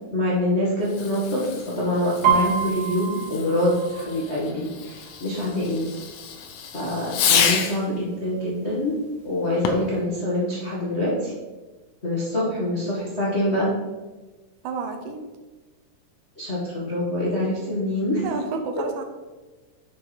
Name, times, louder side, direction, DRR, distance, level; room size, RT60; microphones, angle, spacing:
voice 1, 0.1-5.9 6.7-9.0 9.2-11.3 12.0-13.7 16.4-18.2, left 1 dB, 35° left, -7 dB, 1.0 m, -25 dB
Fireworks, 0.8-7.9 9.5-10.0, left 7 dB, 75° left, 2.1 m, -29 dB
Piano, 2.2-5.9 6.2-6.6 7.0-7.6 8.2-8.3 8.5-9.6 9.9-10.0, right 7 dB, 65° right, 2.2 m, -27 dB
voice 2, 12.4-12.9 14.6-15.2 17.6-17.8 18.2-19.0, right 4 dB, 85° right, 5 dB, 2.5 m, -32 dB
7.0 x 4.6 x 5.0 m, 1.2 s
omnidirectional pair, 3.8 m